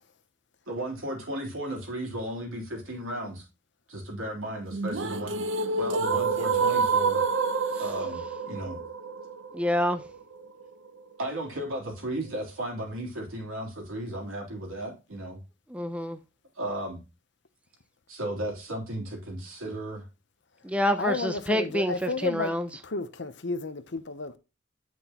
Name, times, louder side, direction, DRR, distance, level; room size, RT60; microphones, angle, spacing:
voice 1, 0.7-3.5 3.9-5.4 5.8-7.2 7.8-8.8 11.2-15.4 16.6-17.0 18.1-20.0, right 1 dB, 85° right, 3.4 m, -35 dB
sound 1, 4.7-10.7, right 4 dB, 65° right, 0.8 m, -28 dB
voice 2, 9.5-10.0 15.7-16.2 20.6-22.7, equal, 5° right, 0.5 m, -27 dB
voice 3, 21.0-22.6 22.8-24.4, left 3 dB, 60° left, 0.8 m, -32 dB
8.9 x 6.0 x 2.9 m
head